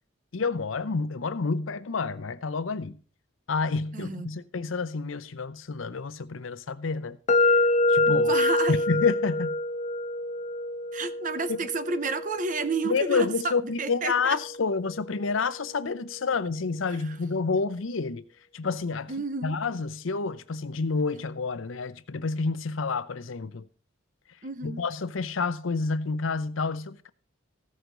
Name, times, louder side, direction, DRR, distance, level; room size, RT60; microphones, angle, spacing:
voice 1, 0.3-3.0 3.5-7.6 7.9-8.3 8.7-9.6 11.5-11.6 12.8-18.2 18.5-19.1 19.4-23.7 24.6-27.1, left 4 dB, 80° left, 0.7 m, -29 dB
voice 2, 3.9-4.3 8.1-8.8 10.9-14.4 16.9-17.2 19.1-19.6 24.4-24.8, right 4 dB, 40° right, 0.7 m, -31 dB
sound 1, 7.3-15.1, left 2 dB, 35° left, 0.4 m, -27 dB
15.5 x 6.4 x 3.9 m
head